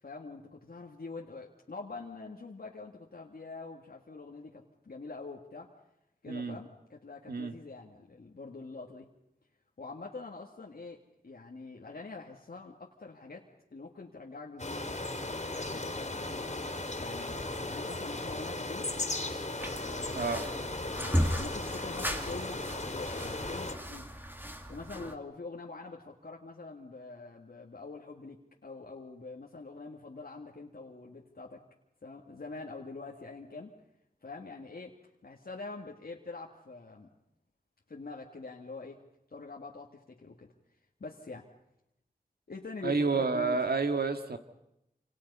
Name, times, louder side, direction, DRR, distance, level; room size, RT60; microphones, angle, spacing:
voice 1, 0.0-5.7 6.2-9.1 9.8-11.0 11.2-16.6 17.0-18.9 19.8-20.3 21.0-24.1 24.7-31.6 32.0-33.7 34.2-35.0 35.2-37.1 37.9-39.0 39.3-40.5 41.0-41.5 42.5-43.6, left 3 dB, 80° left, -1 dB, 2.0 m, -45 dB
voice 2, 6.3-6.6 7.3-7.5 20.1-20.4 42.8-44.4, right 4 dB, 90° right, 7 dB, 1.8 m, -29 dB
sound 1, 14.6-23.8, left 2 dB, 50° left, 3.2 m, -36 dB
sound 2, 19.6-25.1, equal, 15° right, 2.2 m, -36 dB
27.5 x 27.0 x 5.6 m, 0.85 s
wide cardioid pair, 65°, 16 cm